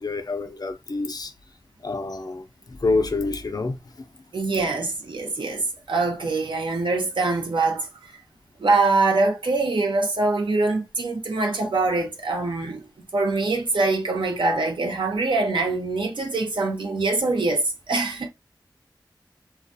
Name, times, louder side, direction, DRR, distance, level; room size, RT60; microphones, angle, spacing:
voice 1, 0.0-1.3 1.8-3.8, left 3 dB, 55° left, 0.4 m, -27 dB
voice 2, 4.3-8.2 8.6-18.3, right 3 dB, 90° right, 0.6 m, -24 dB
2.3 x 2.1 x 2.5 m
wide cardioid pair, 60°, 8 cm